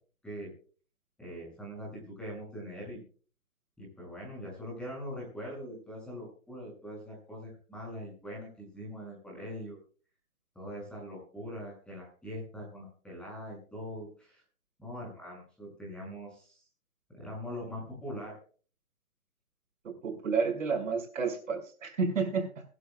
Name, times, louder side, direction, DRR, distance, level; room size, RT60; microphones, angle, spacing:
voice 1, 1.2-3.0 3.8-9.8 10.5-14.4 14.8-16.6 17.1-18.4, equal, ahead, -3 dB, 6.8 m, -42 dB
voice 2, 20.0-22.6, right 5 dB, 60° right, 4 dB, 6.1 m, -30 dB
24.5 x 11.5 x 2.4 m, 0.40 s
hypercardioid pair, 160°, 44 cm